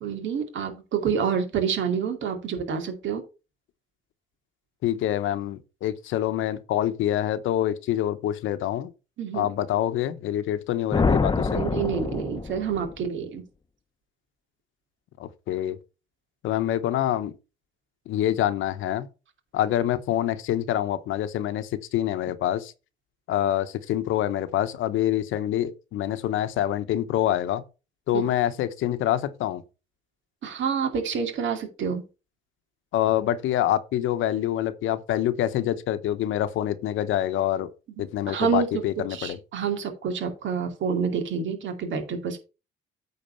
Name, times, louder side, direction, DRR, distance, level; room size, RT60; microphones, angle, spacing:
voice 1, 0.0-3.2 9.2-9.5 11.5-13.4 28.1-28.2 30.4-32.0 38.3-38.7 39.1-42.4, right 6 dB, 70° right, 2.3 m, -28 dB
voice 2, 4.8-8.9 9.3-11.6 15.2-15.8 16.4-17.3 18.1-19.1 19.5-22.7 23.3-27.6 28.1-29.6 32.9-37.7 38.0-39.4, left 12 dB, 85° left, 0.9 m, -26 dB
sound 1, 10.9-12.9, left 4 dB, 20° left, 0.8 m, -25 dB
8.8 x 4.2 x 5.5 m
cardioid pair, 90°, 20 cm